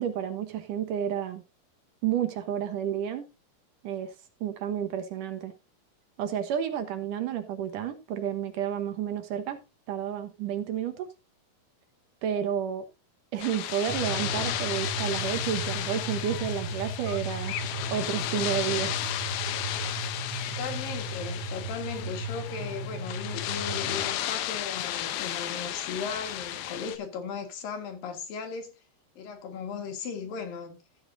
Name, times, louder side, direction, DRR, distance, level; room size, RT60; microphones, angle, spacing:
voice 1, 0.0-1.4 2.0-3.3 3.8-4.1 4.4-5.5 6.2-9.6 9.9-11.1 12.2-12.8 13.3-17.6 17.9-18.9, right 9 dB, 65° right, 2.5 m, -31 dB
sound 1, 13.4-27.0, left 12 dB, 90° left, 2.8 m, -34 dB
sound 2, 13.9-24.1, right 2 dB, 45° right, 2.4 m, -36 dB
voice 2, 20.6-28.7 29.2-30.8, left 5 dB, 70° left, 3.5 m, -37 dB
14.5 x 8.7 x 2.7 m
omnidirectional pair, 4.3 m